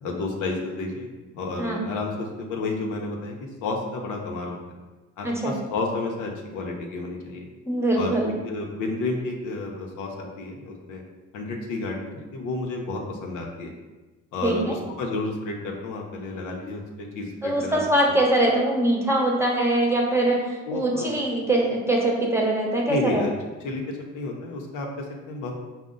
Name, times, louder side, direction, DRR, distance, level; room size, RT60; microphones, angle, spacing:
voice 1, 0.0-4.6 5.2-7.5 7.9-11.0 11.3-13.7 14.3-17.8 20.7-21.2 22.9-23.3 23.6-25.5, left 3 dB, 90° left, 0 dB, 0.7 m, -31 dB
voice 2, 5.2-5.6 7.7-8.3 14.4-14.8 17.4-23.2, right 1 dB, 10° right, -1 dB, 0.8 m, -23 dB
5.0 x 2.1 x 3.7 m, 1.2 s
cardioid pair, 90°, 30 cm